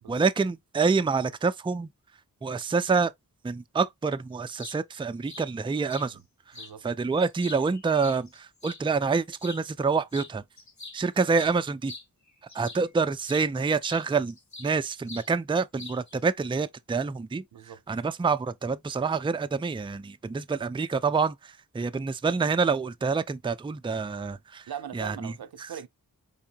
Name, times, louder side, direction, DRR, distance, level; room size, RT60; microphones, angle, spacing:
voice 1, 0.1-1.9 2.4-3.1 3.4-6.2 6.8-10.4 10.9-11.9 12.5-17.4 17.9-24.7 24.9-25.3, right 4 dB, 15° right, 0.4 m, -27 dB
sound 1, 4.6-4.8 5.3-5.5 5.9-6.1 6.5-6.7 7.2-8.8 9.3-9.6 10.1-10.3 10.6-12.9 13.3-13.5 13.9-14.8 15.1-15.3 15.8-16.2, left 3 dB, 50° left, 1.4 m, -43 dB
voice 2, 6.5-6.9 17.5-17.8 24.7-25.9, right 9 dB, 85° right, 0.6 m, -40 dB
4.5 x 3.6 x 2.8 m
wide cardioid pair, 75°, 36 cm